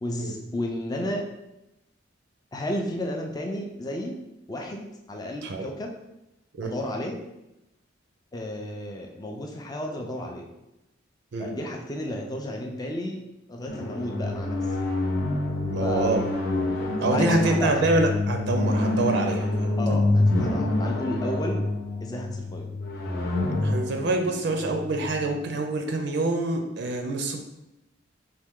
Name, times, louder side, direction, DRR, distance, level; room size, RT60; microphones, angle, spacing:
voice 1, 0.0-1.3 2.5-4.2 4.5-5.9 6.6-7.2 8.3-10.5 11.4-13.2 13.5-14.6 15.8-16.1 17.1-17.9 19.8-21.6 22.0-22.7, left 1 dB, 20° left, 1 dB, 0.4 m, -32 dB
sound 1, 13.7-25.3, left 2 dB, 60° left, 0.8 m, -27 dB
voice 2, 15.7-16.3 17.0-20.0 23.6-27.4, right 2 dB, 60° right, 3 dB, 0.5 m, -26 dB
4.3 x 2.8 x 3.6 m, 0.92 s
head